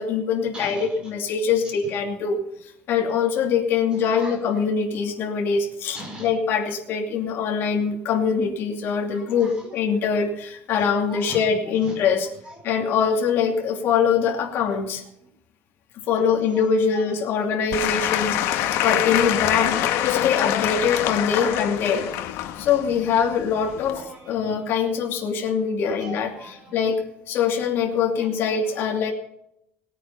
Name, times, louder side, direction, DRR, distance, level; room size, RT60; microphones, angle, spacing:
voice 1, 0.0-12.3 12.6-15.0 16.1-22.0 22.6-24.0 24.3-26.3 26.7-27.0 27.3-29.1, left 6 dB, 55° left, 0 dB, 2.7 m, -23 dB
voice 2, 0.5-1.1 1.6-1.9 3.9-4.6 5.8-6.4 7.3-7.4 9.1-9.8 10.1-10.2 10.7-13.0 13.4-13.5 14.5-14.8 15.2-15.3 16.1-18.0 19.3-20.7 21.4-22.3 23.6-24.4 25.8-26.8 28.2-28.9, right 1 dB, 20° right, 1 dB, 5.1 m, -42 dB
Applause / Crowd, 17.7-24.0, left 12 dB, 85° left, 1.3 m, -25 dB
19.0 x 9.1 x 5.7 m, 0.77 s
cardioid pair, 175°, 5 cm